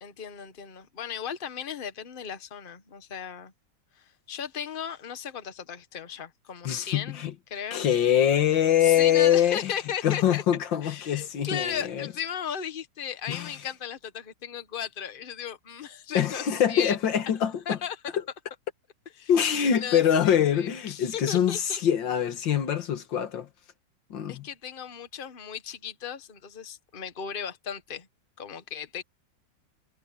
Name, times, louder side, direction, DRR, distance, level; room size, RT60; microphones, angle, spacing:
voice 1, 0.0-3.5 4.0-7.8 8.8-10.4 10.8-17.0 17.6-18.1 19.2-19.3 19.7-21.8 24.3-28.1 28.4-29.0, left 8 dB, 30° left, 1.3 m, -36 dB
voice 2, 6.7-7.3 7.7-9.7 10.0-12.1 13.3-13.5 16.1-17.8 19.3-23.5 24.1-24.5, left 9 dB, 90° left, 2.1 m, -24 dB
omnidirectional pair, 2.0 m